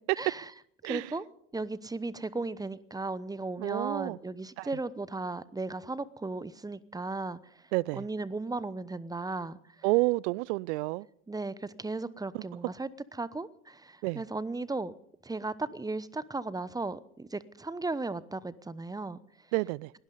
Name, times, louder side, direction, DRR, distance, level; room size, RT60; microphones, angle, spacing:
voice 1, 0.1-0.5 0.8-1.2 1.5-9.8 11.3-14.9 15.2-19.2, right 3 dB, 10° right, 0.9 m, -36 dB
voice 2, 3.6-4.2 4.6-4.7 7.7-8.0 9.8-11.1 12.3-12.4 14.0-14.2 19.5-19.9, right 23 dB, 60° right, 0.5 m, -29 dB
20.5 x 18.0 x 4.0 m
figure-of-eight pair, 65°, 41 cm